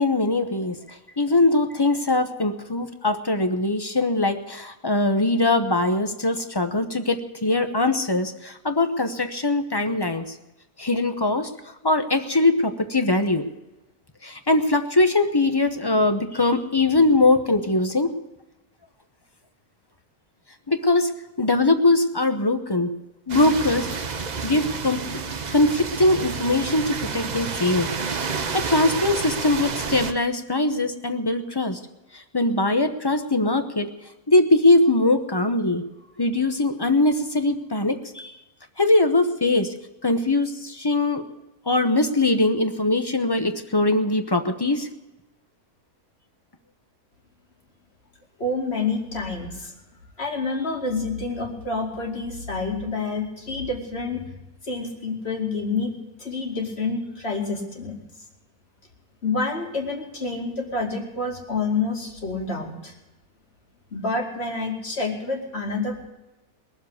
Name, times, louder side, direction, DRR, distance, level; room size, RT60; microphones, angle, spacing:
voice 1, 0.0-10.4 10.8-11.5 11.8-13.4 14.2-18.2 20.7-21.1 21.4-22.9 23.3-23.9 24.4-25.1 25.5-27.9 28.3-31.8 32.1-33.9 34.3-35.8 36.2-38.3 38.8-39.7 40.0-41.2 41.7-44.9, left 2 dB, 20° left, 8 dB, 0.7 m, -21 dB
sound 1, 23.3-30.1, right 5 dB, 40° right, 0.7 m, -30 dB
voice 2, 48.4-49.7 50.2-54.3 54.6-58.0 59.2-62.9 63.9-66.1, left 3 dB, 40° left, 1 dB, 2.7 m, -28 dB
20.5 x 7.4 x 8.2 m, 0.98 s
omnidirectional pair, 1.6 m